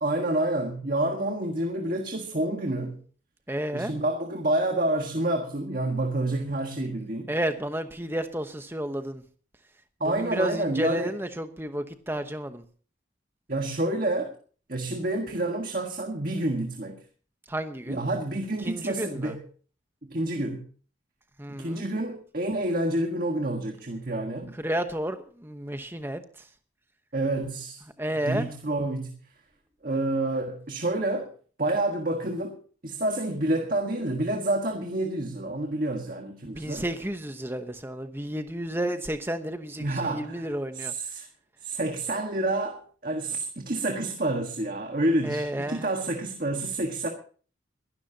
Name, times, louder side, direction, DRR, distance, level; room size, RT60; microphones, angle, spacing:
voice 1, 0.0-3.0 3.7-7.3 10.0-11.1 13.5-14.3 14.7-17.0 17.9-19.4 20.0-20.7 21.6-24.6 27.1-27.8 28.2-29.2 29.8-31.3 31.6-32.6 32.8-36.8 39.8-40.5 40.7-41.3 41.6-47.1, right 1 dB, 45° right, 1.6 m, -28 dB
voice 2, 3.5-3.9 7.3-9.2 10.0-12.6 17.5-18.0 18.6-19.4 21.4-21.8 24.5-26.2 28.0-28.5 36.4-40.9 45.2-45.9, right 1 dB, 10° right, 1.0 m, -31 dB
22.0 x 12.0 x 2.9 m
head